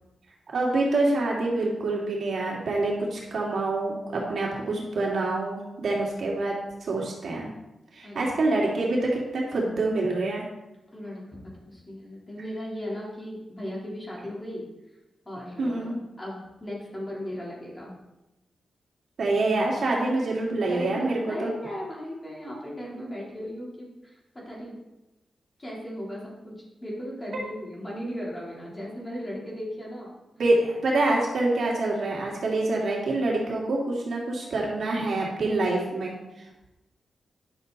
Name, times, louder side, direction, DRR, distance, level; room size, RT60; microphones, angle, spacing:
voice 1, 0.5-6.5 6.8-7.5 7.9-10.5 15.6-16.0 19.2-21.5 30.4-36.1, right 2 dB, 65° right, -3 dB, 2.5 m, -26 dB
voice 2, 10.9-11.2 11.5-14.7 15.3-17.9 20.7-24.8 25.6-30.1, equal, 20° left, -5 dB, 3.5 m, -37 dB
10.5 x 6.7 x 4.1 m, 0.97 s
wide cardioid pair, 105°, 0 cm